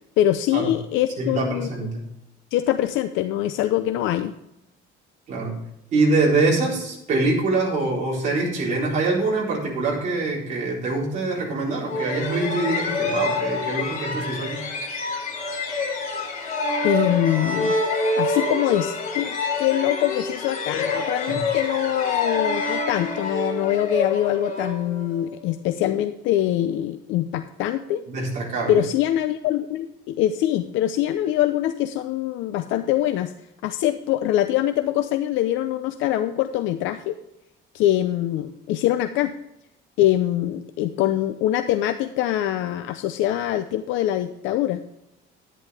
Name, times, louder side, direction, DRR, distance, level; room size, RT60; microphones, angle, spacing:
voice 1, 0.2-1.7 2.5-4.3 16.8-17.7 18.2-28.0 28.7-33.3 33.6-37.2 37.7-39.3 40.0-44.8, left 12 dB, 70° left, 9 dB, 0.6 m, -23 dB
voice 2, 1.2-2.0 5.3-5.6 5.9-14.6 21.3-21.4 28.1-28.8, right 3 dB, 35° right, -4 dB, 4.2 m, -24 dB
sound 1, 11.9-25.4, left 3 dB, 40° left, 3.0 m, -27 dB
11.0 x 10.0 x 3.5 m, 0.85 s
cardioid pair, 175°, 21 cm